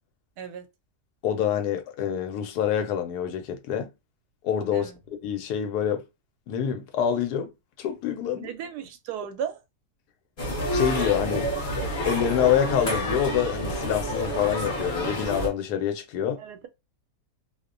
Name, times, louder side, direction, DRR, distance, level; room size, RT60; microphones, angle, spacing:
voice 1, 0.4-0.7 4.7-5.0 8.3-9.6 16.4-16.7, right 8 dB, 90° right, 1.1 m, -35 dB
voice 2, 1.2-3.9 4.4-4.9 5.2-6.0 6.5-7.5 7.8-8.5 10.7-11.5 12.0-16.4, left 9 dB, 85° left, 1.2 m, -26 dB
sound 1, 10.4-15.5, equal, 45° left, 0.9 m, -29 dB
2.7 x 2.1 x 2.4 m
omnidirectional pair, 1.7 m